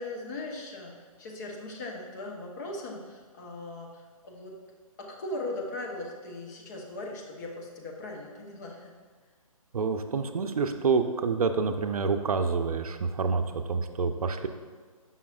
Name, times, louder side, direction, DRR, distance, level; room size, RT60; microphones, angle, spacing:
voice 1, 0.0-4.5 5.0-8.9, left 2 dB, 30° left, 0 dB, 0.8 m, -39 dB
voice 2, 9.7-13.4 13.7-14.5, right 4 dB, 75° right, 8 dB, 0.5 m, -27 dB
7.0 x 5.6 x 2.4 m, 1.5 s
hypercardioid pair, 150°, 19 cm